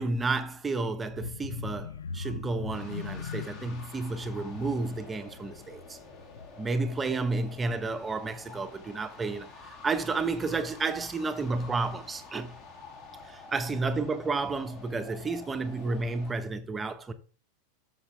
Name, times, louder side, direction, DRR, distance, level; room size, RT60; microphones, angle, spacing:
voice 1, 0.0-6.0 6.6-12.6 13.2-17.1, right 3 dB, 15° right, 1.0 m, -31 dB
sound 1, 1.1-6.8 7.2-7.5 7.8-7.9, left 5 dB, 65° left, 0.8 m, -41 dB
Synthetic Horror Winds, 2.7-16.3, left 3 dB, 35° left, 3.4 m, -49 dB
13.5 x 5.9 x 3.4 m
figure-of-eight pair, 90°, 0 cm